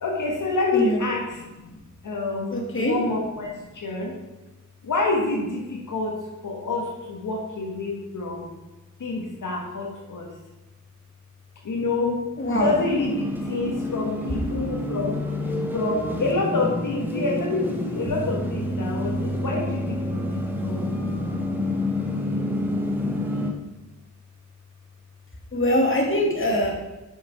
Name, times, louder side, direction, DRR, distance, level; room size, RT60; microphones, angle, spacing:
voice 1, 0.0-4.2 4.8-6.2 6.4-8.5 9.0-10.3 11.6-12.2 12.5-15.2 15.7-20.4 20.7-20.9, left 3 dB, 80° left, -1 dB, 1.4 m, -27 dB
voice 2, 2.5-3.0 12.4-12.7 25.5-26.7, equal, 40° left, 0 dB, 2.0 m, -22 dB
sound 1, 12.6-23.5, left 2 dB, 5° right, 1.4 m, -29 dB
sound 2, 18.1-23.0, right 4 dB, 45° right, 1.6 m, -34 dB
6.7 x 6.2 x 4.8 m, 1.1 s
cardioid pair, 55°, 31 cm